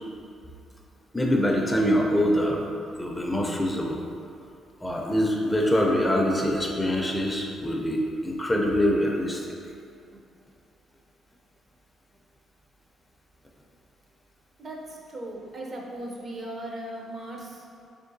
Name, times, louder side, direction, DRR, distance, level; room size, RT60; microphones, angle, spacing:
voice 1, 1.1-2.6 3.0-4.0 4.8-9.4, equal, 15° left, -1 dB, 0.4 m, -24 dB
voice 2, 14.6-17.6, right 1 dB, 45° right, -1 dB, 0.6 m, -38 dB
3.6 x 3.1 x 2.6 m, 2.4 s
cardioid pair, 90°, 0 cm